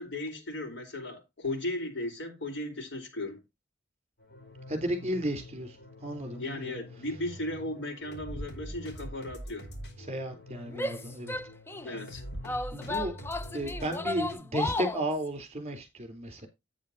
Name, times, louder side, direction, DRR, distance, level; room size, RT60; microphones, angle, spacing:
voice 1, 0.0-3.4 6.4-9.7 11.8-12.2, left 1 dB, 75° left, 4.2 m, -36 dB
sound 1, 4.2-14.3, equal, 55° left, 4.4 m, -44 dB
voice 2, 4.7-5.8 6.0-6.6 10.0-11.4 12.7-13.1 13.5-16.5, right 1 dB, 35° right, 3.4 m, -33 dB
Female speech woman speaking / Yell, 10.7-12.0 12.4-15.1, left 2 dB, 10° left, 0.4 m, -34 dB
10.5 x 9.2 x 2.7 m
head